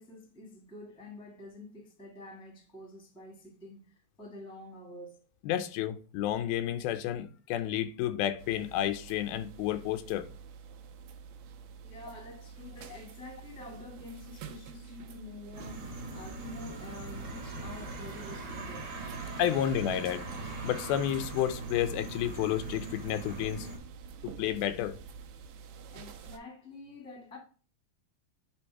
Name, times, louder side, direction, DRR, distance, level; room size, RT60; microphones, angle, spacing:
voice 1, 0.0-5.2 11.8-18.9 25.9-27.4, left 2 dB, ahead, 1.1 m, -48 dB
voice 2, 5.4-10.3 19.4-20.3 20.6-23.7 24.2-25.0, left 11 dB, 90° left, 2.6 m, -31 dB
sound 1, 8.4-26.4, right 6 dB, 90° right, 2.7 m, -49 dB
sound 2, 15.5-23.8, right 2 dB, 55° right, 2.7 m, -41 dB
8.2 x 3.5 x 4.6 m
omnidirectional pair, 4.2 m